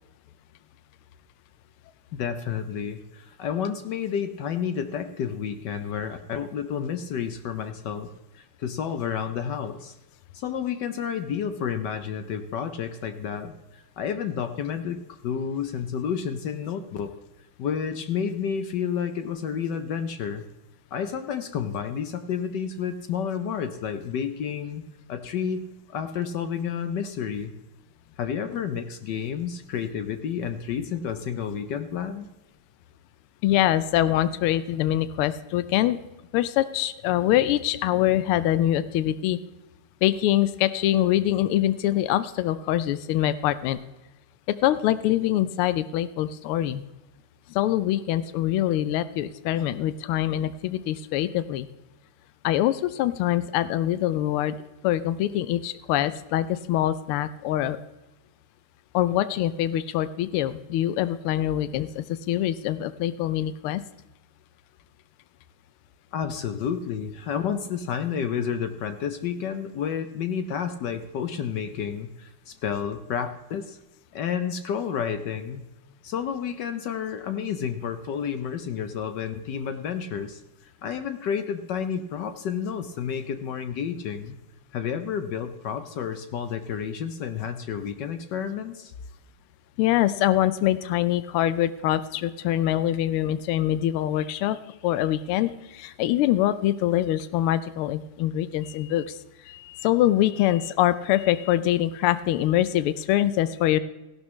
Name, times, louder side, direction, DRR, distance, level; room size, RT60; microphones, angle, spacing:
voice 1, 2.1-10.0 10.3-17.1 17.6-20.5 20.9-24.8 25.1-25.6 25.9-27.5 28.2-32.3 66.1-73.8 74.1-75.6 76.0-80.4 80.8-84.3 84.7-88.9, left 7 dB, 65° left, 9 dB, 1.1 m, -30 dB
voice 2, 33.4-36.0 36.3-39.4 40.0-43.8 44.6-46.8 47.5-51.7 52.4-54.5 54.8-57.8 58.9-63.8 89.8-94.6 94.8-99.1 99.5-103.8, left 13 dB, 85° left, 14 dB, 1.5 m, -24 dB
15.5 x 11.5 x 3.1 m, 1.0 s
omnidirectional pair, 2.4 m